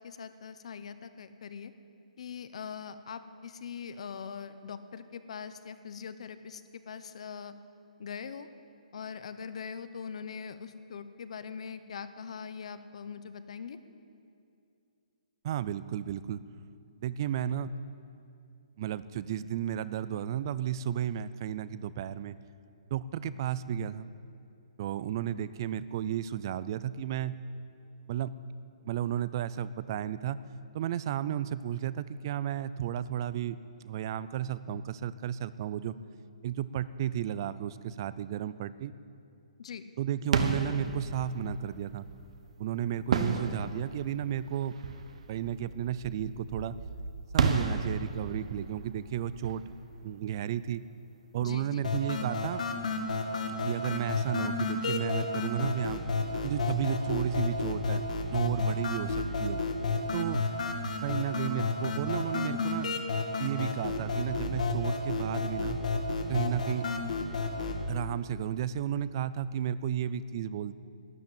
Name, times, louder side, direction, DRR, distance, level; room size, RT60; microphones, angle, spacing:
voice 1, 0.0-1.7 2.2-7.5 8.0-8.5 8.9-13.8 39.6-39.8 51.4-51.8, left 6 dB, 55° left, 12 dB, 0.8 m, -42 dB
voice 2, 15.4-16.4 17.0-17.7 18.8-22.4 22.9-24.1 24.8-27.4 28.1-28.3 28.8-30.4 30.7-36.0 36.4-38.9 40.0-42.1 42.6-44.8 45.3-46.8 47.3-49.6 50.0-50.8 51.3-52.6 53.6-56.0 56.4-59.6 60.1-60.4 61.0-62.9 63.4-65.8 66.3-66.9 67.9-70.7, right 10 dB, 35° right, 16 dB, 0.4 m, -33 dB
sound 1, 40.2-50.8, right 4 dB, 60° right, 1.2 m, -34 dB
sound 2, 51.8-67.8, left 3 dB, 70° left, 2.1 m, -31 dB
12.5 x 10.5 x 8.7 m, 2.5 s
hypercardioid pair, 165°, 4 cm